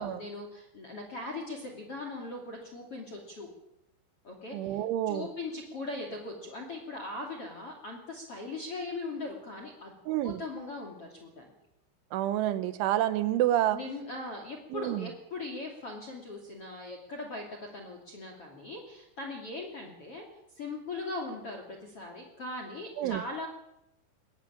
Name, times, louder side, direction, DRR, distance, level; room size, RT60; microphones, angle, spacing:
voice 1, 0.0-3.5 4.2-9.9 10.2-11.5 13.7-20.2 20.6-23.5, left 2 dB, 35° left, 3 dB, 2.9 m, -40 dB
voice 2, 4.5-5.3 10.1-10.4 12.1-13.8 14.7-15.0 23.0-23.2, right 13 dB, 80° right, 13 dB, 3.2 m, -28 dB
21.0 x 15.5 x 8.7 m, 0.84 s
omnidirectional pair, 5.8 m